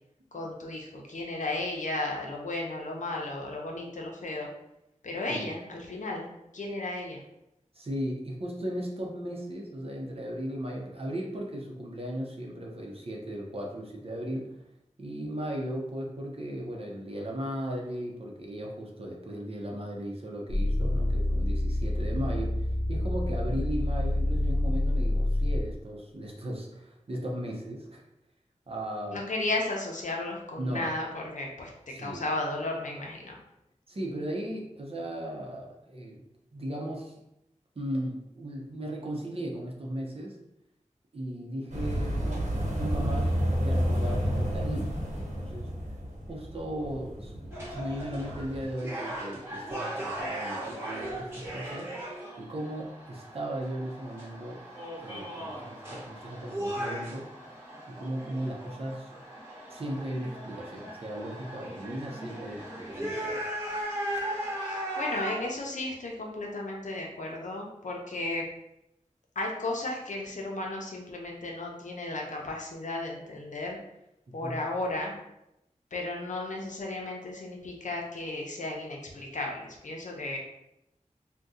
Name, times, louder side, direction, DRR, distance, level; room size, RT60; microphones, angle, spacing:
voice 1, 0.3-4.5 5.0-6.3 6.5-7.2 29.1-33.4 64.6-68.5 69.4-73.8 74.3-75.2 75.9-80.4, left 2 dB, 80° left, -1 dB, 0.6 m, -34 dB
voice 2, 7.7-14.6 15.0-28.0 28.7-29.2 30.6-30.9 31.9-32.2 33.9-36.2 36.5-37.1 37.8-40.4 41.1-42.5 42.7-45.0 45.3-45.7 46.3-51.9 52.4-54.6 55.0-57.3 57.9-59.1 59.7-63.4 74.3-74.6, right 1 dB, 50° right, -1 dB, 0.7 m, -36 dB
sound 1, 20.5-25.7, left 1 dB, 35° left, 0.6 m, -27 dB
sound 2, 41.7-48.7, equal, 70° right, 1.0 m, -30 dB
sound 3, 47.5-65.5, right 1 dB, 20° right, 1.0 m, -38 dB
2.7 x 2.2 x 3.6 m, 0.85 s
wide cardioid pair, 80°, 13 cm